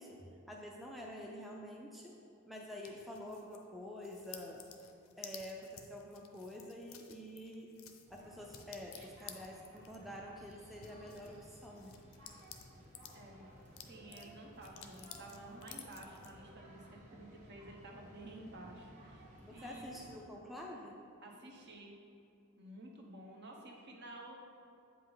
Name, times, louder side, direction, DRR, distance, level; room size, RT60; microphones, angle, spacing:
voice 1, 0.0-2.2 2.5-4.6 5.2-7.7 8.1-12.0 19.4-21.0, left 1 dB, ahead, -2 dB, 0.4 m, -48 dB
sound 1, 2.8-3.7 4.0-13.2 13.6-16.3, left 9 dB, 65° left, 0.6 m, -54 dB
sound 2, 8.1-20.2, equal, 35° right, 1.3 m, -57 dB
voice 2, 13.1-13.5 13.7-19.2 19.5-20.0 21.2-21.9 22.6-24.4, right 2 dB, 50° right, 0 dB, 1.0 m, -52 dB
7.9 x 5.2 x 3.9 m, 2.7 s
head